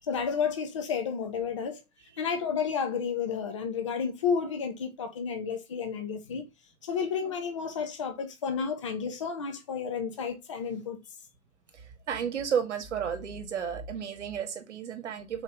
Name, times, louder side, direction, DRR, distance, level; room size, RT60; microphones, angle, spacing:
voice 1, 0.1-1.8 2.2-6.5 6.8-11.0, left 6 dB, 25° left, 0.5 m, -31 dB
voice 2, 11.7-15.4, right 7 dB, 55° right, 1.2 m, -32 dB
4.3 x 2.9 x 3.5 m
hypercardioid pair, 140°, 43 cm